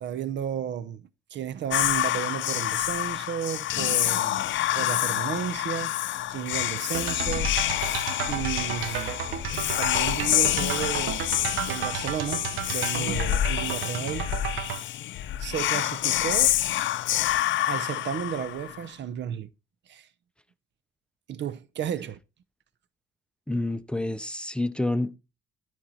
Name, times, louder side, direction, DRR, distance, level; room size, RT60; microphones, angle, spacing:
voice 1, 0.0-1.0 1.3-4.4 4.7-6.0 6.3-7.6 8.3-9.2 9.8-11.2 11.7-14.3 15.4-16.6 17.7-19.5 19.9-20.1 21.3-22.2, right 9 dB, 65° right, 0.7 m, -33 dB
Whispering, 1.7-18.8, left 13 dB, 75° left, 0.5 m, -27 dB
sound 1, 6.9-14.8, right 9 dB, 90° right, 0.9 m, -33 dB
sound 2, 7.7-12.8, left 9 dB, 55° left, 1.0 m, -50 dB
voice 2, 23.5-25.2, left 2 dB, 5° left, 0.6 m, -28 dB
13.0 x 4.6 x 4.1 m
cardioid pair, 90°, 20 cm